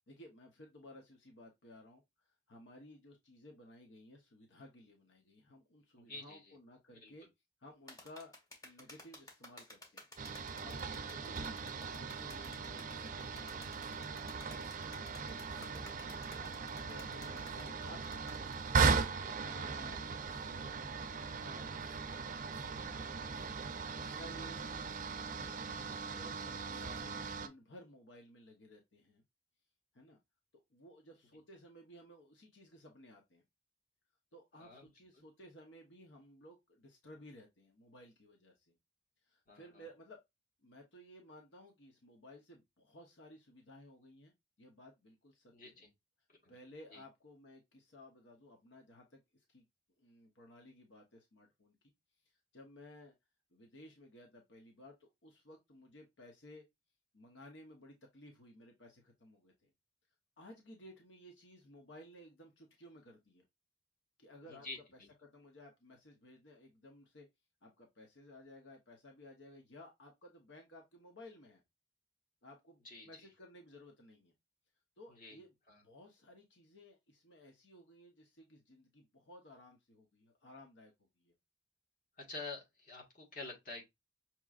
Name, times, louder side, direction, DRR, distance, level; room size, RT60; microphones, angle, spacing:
voice 1, 0.0-7.3 7.6-8.3 8.6-10.1 10.6-15.9 16.1-18.4 18.8-23.3 23.9-24.9 25.3-29.2 29.9-30.2 30.7-33.4 34.3-38.8 39.2-40.2 40.6-44.3 44.6-45.8 46.5-49.6 50.0-51.8 52.2-53.1 53.5-56.6 57.1-59.7 60.4-63.4 64.2-67.3 67.6-71.6 72.4-74.3 75.0-75.5 75.8-81.3, left 1 dB, 80° left, 1.0 m, -57 dB
voice 2, 6.0-6.5 6.9-7.1 15.2-15.4 16.9-17.0 23.9-24.2 34.6-34.9 39.5-39.8 45.5-45.9 46.4-46.5 46.9-47.0 64.5-65.1 72.8-73.3 75.1-75.4 75.7-75.8 82.3-83.9, left 3 dB, 50° left, 1.6 m, -49 dB
sound 1, 7.9-18.9, left 1 dB, 20° left, 1.4 m, -55 dB
sound 2, 10.2-27.5, right 5 dB, 45° right, 0.5 m, -38 dB
6.0 x 2.9 x 2.4 m
head